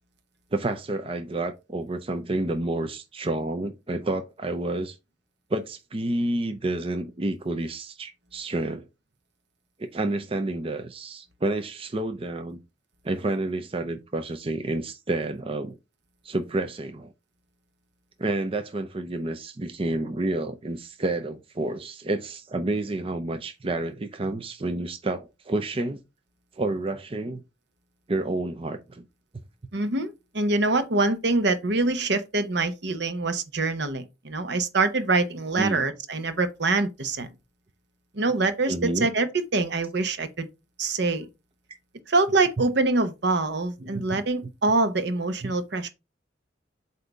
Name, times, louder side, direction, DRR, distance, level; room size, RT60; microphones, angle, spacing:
voice 1, 0.5-5.0 5.5-8.8 9.8-12.6 13.0-15.8 16.2-17.1 18.2-26.0 26.6-27.4 28.1-29.0 35.6-35.8 38.7-39.1 43.8-44.2 45.4-45.5, right 2 dB, 30° right, 0.6 m, -29 dB
voice 2, 29.7-37.3 38.1-40.5 40.8-41.3 42.1-45.9, right 3 dB, 65° right, 1.0 m, -25 dB
8.0 x 2.8 x 5.0 m
head